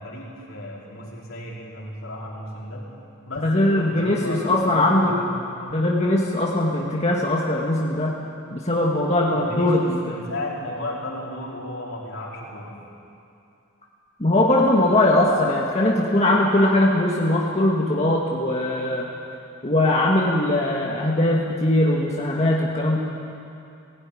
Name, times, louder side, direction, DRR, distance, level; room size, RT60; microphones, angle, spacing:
voice 1, 0.0-2.9 3.3-5.8 9.3-12.8, left 1 dB, 70° left, -4 dB, 4.6 m, -34 dB
voice 2, 3.4-5.1 5.7-8.1 8.5-10.0 14.2-19.1 19.6-23.0, left 1 dB, 30° left, -3 dB, 1.9 m, -20 dB
17.5 x 17.0 x 9.9 m, 2.6 s
head